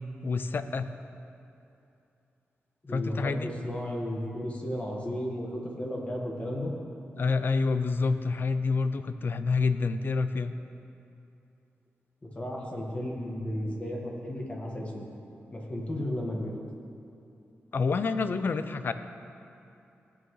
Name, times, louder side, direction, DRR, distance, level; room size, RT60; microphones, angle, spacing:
voice 1, 0.2-0.9 2.9-3.5 7.2-10.5 17.7-18.9, left 4 dB, 50° left, 11 dB, 0.5 m, -28 dB
voice 2, 2.8-6.7 12.2-15.1 15.5-16.5, left 1 dB, 30° left, -1 dB, 1.6 m, -34 dB
16.0 x 8.9 x 3.2 m, 2.7 s
wide cardioid pair, 105°, 4 cm